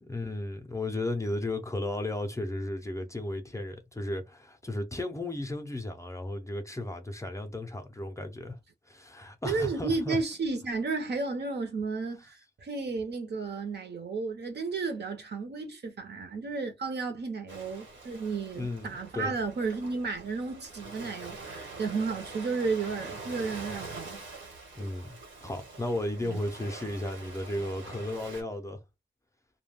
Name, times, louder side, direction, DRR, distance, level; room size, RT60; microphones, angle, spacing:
voice 1, 0.0-8.6 8.9-10.2 18.6-19.3 24.8-28.8, left 1 dB, 15° left, 0.4 m, -34 dB
voice 2, 9.4-24.2 24.8-24.9 26.2-26.4, right 4 dB, 60° right, 0.7 m, -33 dB
Ocean, 17.5-28.4, right 3 dB, 75° right, 1.1 m, -44 dB
2.2 x 2.1 x 3.3 m
wide cardioid pair, 170°, 20 cm